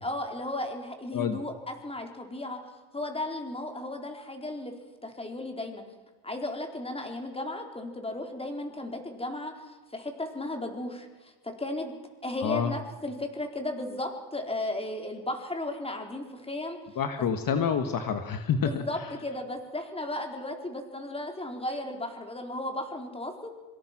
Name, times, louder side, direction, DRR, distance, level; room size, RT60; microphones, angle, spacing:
voice 1, 0.0-2.6 2.9-4.7 5.0-5.8 6.2-9.5 9.9-11.9 12.2-16.8 18.6-23.5, left 1 dB, 15° left, 3 dB, 4.4 m, -35 dB
voice 2, 12.4-12.7 17.0-18.8, left 7 dB, 50° left, 7 dB, 1.8 m, -28 dB
26.0 x 25.5 x 6.2 m, 1.2 s
cardioid pair, 115°, 42 cm